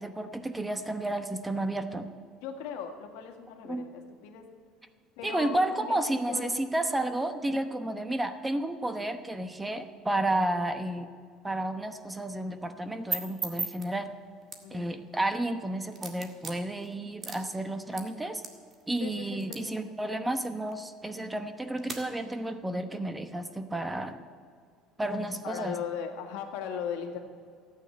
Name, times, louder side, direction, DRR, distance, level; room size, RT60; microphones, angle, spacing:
voice 1, 0.0-2.1 3.7-3.8 5.2-11.1 11.4-14.1 14.7-18.4 18.9-24.2 25.0-25.8, right 1 dB, 10° right, 9 dB, 1.0 m, -31 dB
voice 2, 2.4-4.4 5.2-6.0 6.3-6.5 14.6-15.0 17.9-18.1 19.0-19.8 25.4-27.2, left 7 dB, 85° left, 4 dB, 1.8 m, -38 dB
sound 1, 12.7-22.0, right 4 dB, 35° right, 1.8 m, -42 dB
14.0 x 9.1 x 7.9 m, 2.1 s
cardioid pair, 120°, 0 cm